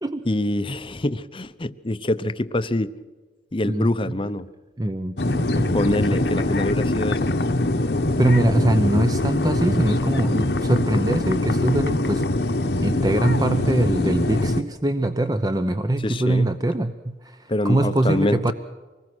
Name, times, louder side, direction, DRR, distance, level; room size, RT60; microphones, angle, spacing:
voice 1, 0.3-2.9 3.5-4.5 5.7-7.3 16.0-16.5 17.5-18.5, left 1 dB, 30° left, 13 dB, 0.8 m, -25 dB
voice 2, 4.8-6.2 8.2-12.3 12.8-18.5, right 1 dB, 20° right, 9 dB, 0.7 m, -23 dB
sound 1, 5.2-14.6, left 2 dB, 65° left, 1.1 m, -23 dB
sound 2, 8.4-8.9 9.4-9.9 12.4-12.9 13.4-13.9, right 1 dB, 35° right, 4.0 m, -44 dB
25.5 x 20.5 x 6.2 m, 1.3 s
head